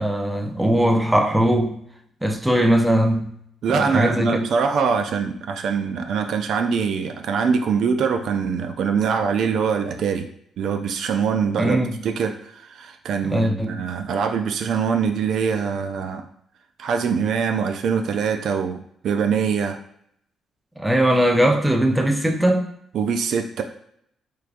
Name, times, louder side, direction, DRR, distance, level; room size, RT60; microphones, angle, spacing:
voice 1, 0.0-1.8 2.2-3.3 3.7-4.5 11.6-12.0 13.2-13.8 20.8-22.7, right 1 dB, 10° right, 3 dB, 0.5 m, -20 dB
voice 2, 3.6-10.3 10.6-16.2 16.8-19.8 22.9-23.6, right 6 dB, 70° right, 6 dB, 0.3 m, -23 dB
4.6 x 2.3 x 2.4 m, 0.70 s
cardioid pair, 90°, 0 cm